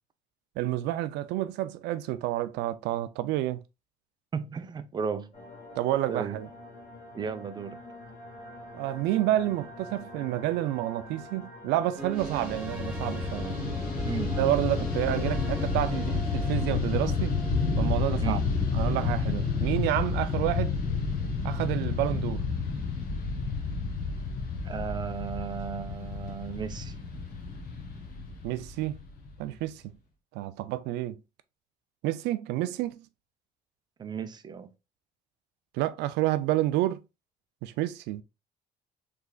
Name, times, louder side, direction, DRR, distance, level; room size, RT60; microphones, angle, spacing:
voice 1, 0.6-3.6 5.8-6.5 8.7-13.8 14.4-17.3 17.8-18.4 18.7-20.7 21.4-22.4 28.4-29.0 29.4-29.8 30.3-31.2 32.0-33.1 35.7-37.0 37.6-38.2, right 14 dB, 90° right, 0.4 m, -29 dB
voice 2, 4.3-5.3 6.1-6.4 7.1-7.8 14.0-14.3 18.2-18.4 24.6-26.9 34.0-34.7, right 6 dB, 25° right, 0.4 m, -35 dB
sound 1, 5.3-19.3, equal, 40° left, 1.7 m, -46 dB
sound 2, 12.0-17.1, equal, 5° right, 0.8 m, -39 dB
Fixed-wing aircraft airplane, 12.2-29.6, left 4 dB, 60° left, 1.1 m, -30 dB
3.7 x 3.3 x 2.3 m
cardioid pair, 110°, 17 cm